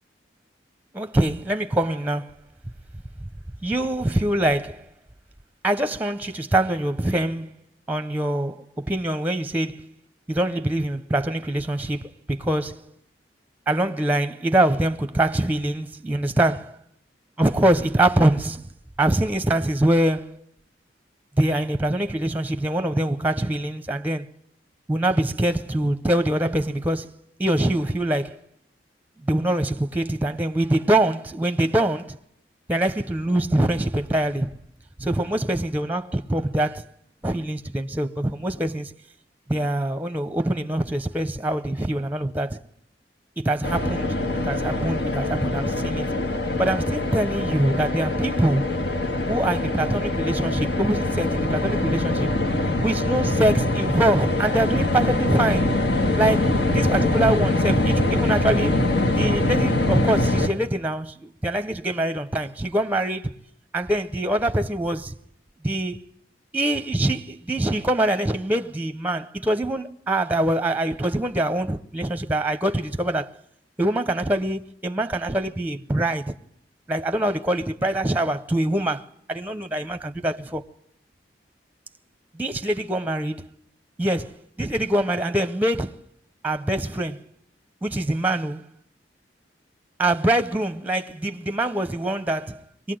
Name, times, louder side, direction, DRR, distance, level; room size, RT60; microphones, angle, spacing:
voice 1, 0.9-2.3 3.6-4.8 5.6-7.5 7.9-9.9 10.3-12.9 13.7-16.7 17.4-18.6 19.0-20.4 21.4-24.3 24.9-27.1 27.4-28.4 29.2-32.2 32.7-34.5 35.0-36.9 37.2-38.9 39.5-42.6 43.4-44.1 44.4-46.1 46.6-48.7 49.3-52.3 52.8-55.7 56.2-58.8 59.1-63.3 63.7-65.2 65.6-66.0 66.5-73.3 73.8-76.3 76.9-80.6 82.3-83.4 84.0-84.3 84.6-85.9 86.4-87.2 87.8-88.7 90.0-93.0, right 1 dB, 10° right, 0.8 m, -24 dB
sound 1, 43.6-60.5, left 1 dB, 70° left, 1.8 m, -23 dB
24.0 x 18.5 x 7.7 m
head